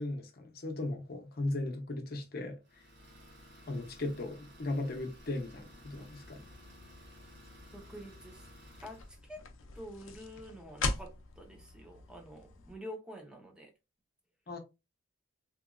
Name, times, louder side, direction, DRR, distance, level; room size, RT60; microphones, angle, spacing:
voice 1, 0.0-2.6 3.7-6.4 14.5-14.6, left 2 dB, 50° left, 0.7 m, -37 dB
Idling, 2.6-9.2, equal, 60° right, 1.2 m, -55 dB
sound 1, 5.7-12.7, left 3 dB, 90° left, 0.5 m, -42 dB
voice 2, 7.7-8.5 8.8-9.4 9.7-13.7, equal, 5° right, 0.6 m, -48 dB
2.9 x 2.5 x 2.2 m
head